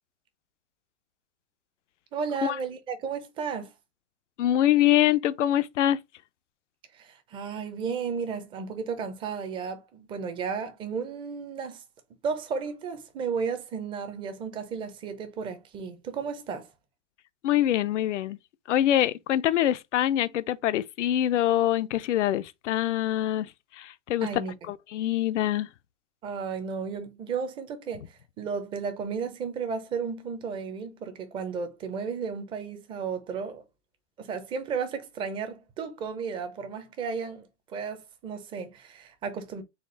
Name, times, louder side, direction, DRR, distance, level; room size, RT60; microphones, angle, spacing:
voice 1, 2.1-3.7 6.9-11.8 12.2-16.7 24.2-24.5 26.2-33.6 34.2-39.6, right 5 dB, 15° right, 0.5 m, -33 dB
voice 2, 4.4-6.0 17.4-18.4 18.7-24.3 24.7-25.7, left 12 dB, 80° left, 0.6 m, -24 dB
4.3 x 2.4 x 3.7 m
hypercardioid pair, 140°, 35 cm